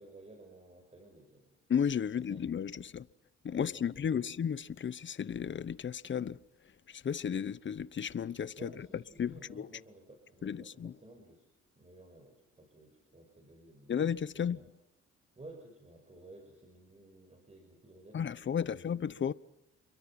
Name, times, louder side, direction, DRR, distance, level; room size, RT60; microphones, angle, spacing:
voice 1, 0.0-1.6 2.1-2.4 3.5-4.3 8.6-11.5 11.8-14.0 14.3-14.7 15.4-19.0, right 2 dB, 20° right, 5.8 m, -55 dB
voice 2, 1.7-3.1 3.4-6.4 6.9-8.7 9.2-9.7 10.4-10.9 13.9-14.6 18.1-19.3, left 8 dB, 40° left, 0.9 m, -33 dB
29.5 x 23.0 x 6.0 m
cardioid pair, 90°, 30 cm